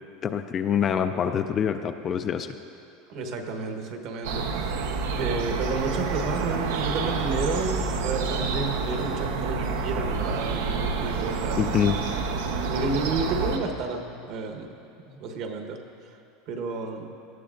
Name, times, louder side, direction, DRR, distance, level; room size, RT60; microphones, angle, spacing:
voice 1, 0.2-2.5 11.6-12.0, left 8 dB, 25° left, 8 dB, 0.3 m, -25 dB
voice 2, 3.1-4.7 5.2-11.8 12.6-14.7 15.1-15.8 16.5-17.1, right 3 dB, 45° right, 4 dB, 1.1 m, -31 dB
sound 1, 4.2-13.6, right 4 dB, 90° right, 0.9 m, -28 dB
18.5 x 13.0 x 2.5 m, 2.7 s
supercardioid pair, 165°, 0 cm